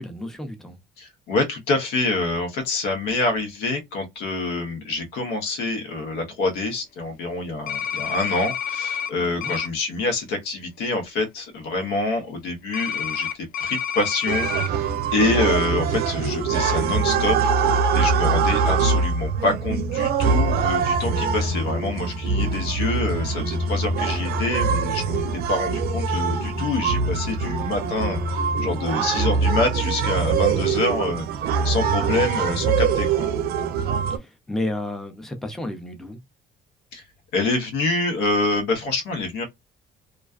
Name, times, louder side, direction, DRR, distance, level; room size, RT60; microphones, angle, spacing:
voice 1, 0.0-0.8 9.2-9.5 31.9-32.2 34.1-36.2, left 1 dB, ahead, 0.5 m, -32 dB
voice 2, 1.0-13.3 13.6-17.4 17.9-33.3 36.9-37.0 37.3-39.5, left 2 dB, 90° left, 0.9 m, -26 dB
sound 1, 7.7-9.1 9.4-9.7 12.7-14.7, left 8 dB, 55° left, 0.4 m, -28 dB
sound 2, 14.3-34.2, right 5 dB, 65° right, 0.5 m, -23 dB
2.4 x 2.2 x 2.3 m
cardioid pair, 110°, 17 cm